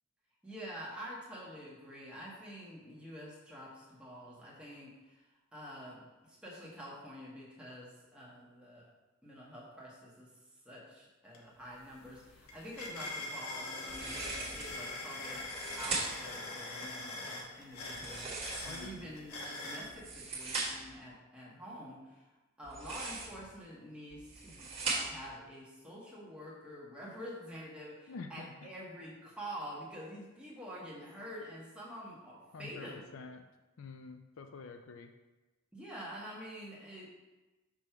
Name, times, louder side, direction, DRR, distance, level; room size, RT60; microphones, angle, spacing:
voice 1, 0.4-5.3 5.5-8.9 9.2-10.3 10.6-15.5 15.8-22.2 22.6-33.1 35.7-37.1, equal, 5° right, -6 dB, 1.4 m, -47 dB
sound 1, 11.3-11.4 11.8-19.9, left 2 dB, 90° left, 1.1 m, -43 dB
sound 2, 13.9-14.8 15.3-16.3 17.9-19.0 19.8-20.9 22.6-23.5 24.1-25.3, right 3 dB, 30° right, 1.5 m, -39 dB
voice 2, 18.6-19.1 28.1-28.7 32.5-33.4 33.8-35.1, left 4 dB, 65° left, 6 dB, 0.4 m, -48 dB
6.2 x 3.2 x 5.7 m, 1.1 s
head